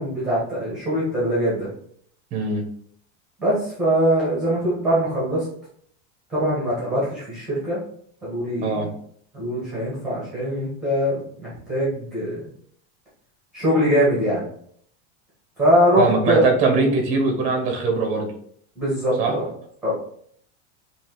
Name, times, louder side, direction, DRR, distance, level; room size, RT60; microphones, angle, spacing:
voice 1, 0.0-1.7 3.4-5.4 6.3-7.8 8.2-8.9 9.3-12.4 13.5-14.4 15.6-16.4 18.8-19.5 19.8-19.9, equal, ahead, -8 dB, 1.2 m, -22 dB
voice 2, 2.3-2.7 8.6-8.9 16.0-18.3 19.2-19.3, right 3 dB, 20° right, 1 dB, 0.8 m, -21 dB
5.8 x 2.9 x 2.9 m, 0.63 s
supercardioid pair, 180°, 36 cm